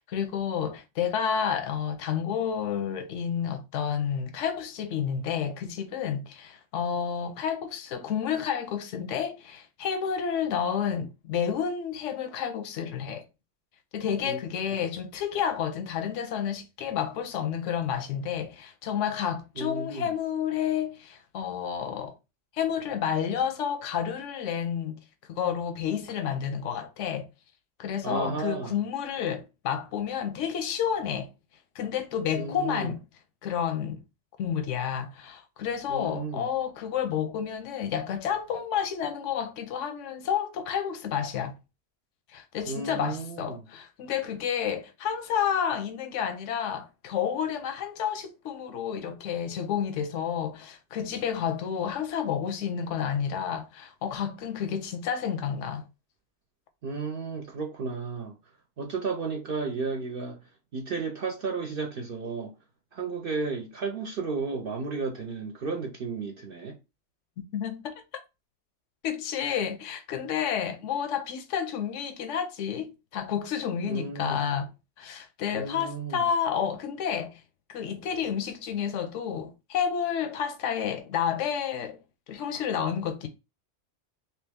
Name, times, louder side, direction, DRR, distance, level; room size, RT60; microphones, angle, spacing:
voice 1, 0.0-13.3 13.9-22.1 22.5-25.0 25.3-27.3 27.8-31.3 31.7-33.0 33.4-34.0 34.4-41.5 42.3-55.9 67.5-68.0 69.0-77.4 77.7-82.0 82.3-83.3, left 8 dB, 85° left, 1.0 m, -30 dB
voice 2, 19.6-20.1 28.0-28.8 32.3-32.9 35.9-36.5 42.7-43.7 56.8-58.3 58.8-60.4 60.7-62.5 62.9-66.8 73.8-74.4 75.5-76.2, right 4 dB, 55° right, 0.8 m, -33 dB
3.0 x 3.0 x 3.5 m
omnidirectional pair, 1.2 m